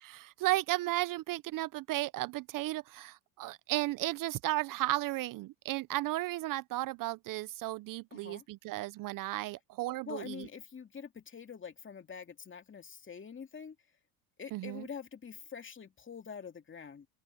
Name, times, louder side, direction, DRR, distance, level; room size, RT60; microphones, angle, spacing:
voice 1, 0.0-10.5 14.5-14.8, right 17 dB, 50° right, 0.6 m, -34 dB
voice 2, 8.1-8.5 10.1-13.8 14.4-17.1, left 6 dB, 25° left, 2.4 m, -45 dB
open air
supercardioid pair, 90°, 44 cm